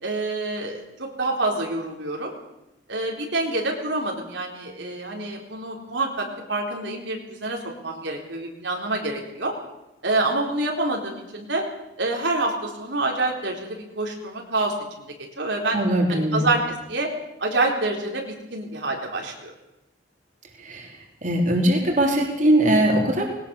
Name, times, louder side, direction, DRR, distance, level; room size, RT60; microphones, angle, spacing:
voice 1, 0.0-2.3 2.9-9.5 10.0-11.6 12.0-14.7 15.4-15.8 16.1-16.6 16.9-17.1 17.4-19.5, right 2 dB, 70° right, 1 dB, 4.0 m, -27 dB
voice 2, 15.7-16.5 20.6-20.9 21.2-23.3, right 1 dB, 40° right, 1 dB, 3.8 m, -20 dB
21.0 x 19.0 x 7.1 m, 0.92 s
head